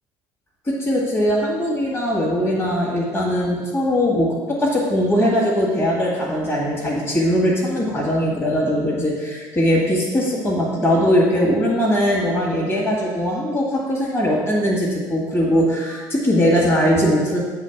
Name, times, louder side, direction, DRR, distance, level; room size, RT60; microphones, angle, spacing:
voice 1, 0.7-17.5, equal, 25° left, -4 dB, 1.8 m, -20 dB
7.4 x 3.2 x 5.9 m, 1.4 s
hypercardioid pair, 75°, 10 cm